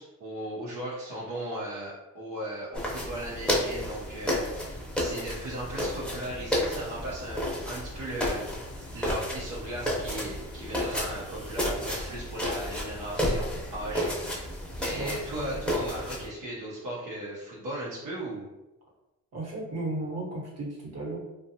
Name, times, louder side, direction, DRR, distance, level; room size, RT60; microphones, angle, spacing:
voice 1, 0.0-8.4 8.9-18.4, right 1 dB, 80° right, -7 dB, 0.8 m, -37 dB
sound 1, 2.7-16.3, equal, 5° left, 0.7 m, -32 dB
voice 2, 14.9-15.6 19.3-21.2, right 2 dB, 55° right, -4 dB, 1.1 m, -35 dB
2.6 x 2.3 x 2.7 m, 0.99 s
cardioid pair, 90°, 30 cm